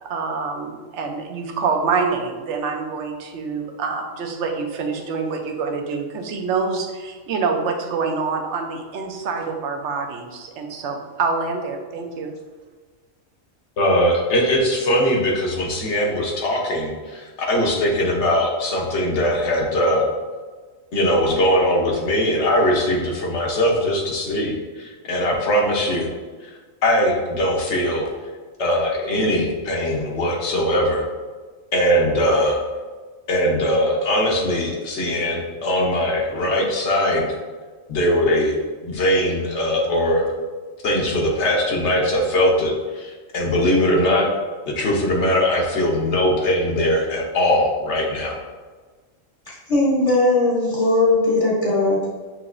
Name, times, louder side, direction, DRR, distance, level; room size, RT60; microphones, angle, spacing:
voice 1, 0.0-12.3, right 4 dB, 65° right, 3 dB, 0.9 m, -26 dB
voice 2, 13.8-20.1 20.9-26.1 26.4-26.5 26.8-28.1 28.6-31.0 31.7-32.6 33.3-37.3 37.9-38.6 38.8-40.3 40.8-44.3 44.6-48.4, equal, 60° left, -1 dB, 1.1 m, -20 dB
voice 3, 49.7-52.1, left 2 dB, 35° left, -5 dB, 0.7 m, -18 dB
6.1 x 2.8 x 2.5 m, 1.4 s
omnidirectional pair, 1.4 m